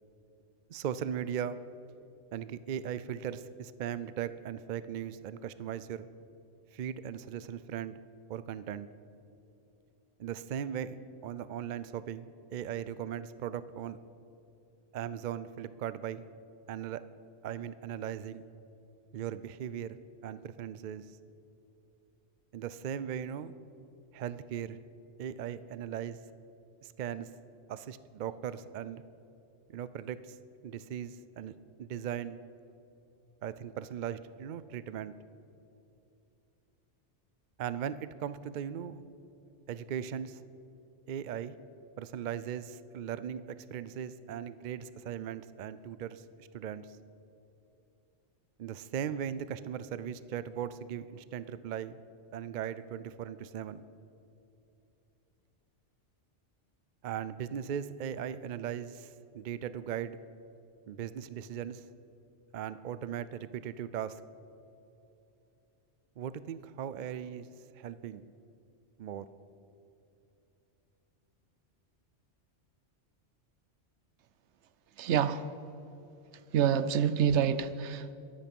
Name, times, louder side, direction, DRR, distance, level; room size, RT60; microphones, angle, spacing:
voice 1, 0.7-1.6 2.3-6.1 6.7-8.0 8.3-8.9 10.2-11.0 11.2-14.0 14.9-16.2 16.7-17.0 17.4-18.4 19.1-20.0 20.2-21.1 22.5-23.5 24.1-24.8 25.2-26.2 26.8-27.3 27.7-29.0 29.7-30.4 30.6-32.4 33.4-35.1 37.6-39.0 39.7-40.4 41.1-41.6 42.0-46.9 48.6-52.0 52.3-53.8 57.0-60.2 60.9-61.8 62.5-64.2 66.2-67.5 67.8-68.2 69.0-69.3, right 9 dB, 55° right, 14 dB, 0.5 m, -38 dB
voice 2, 75.0-75.4 76.5-78.1, right 8 dB, 75° right, 14 dB, 0.9 m, -27 dB
22.5 x 8.6 x 5.3 m, 2.8 s
omnidirectional pair, 1.2 m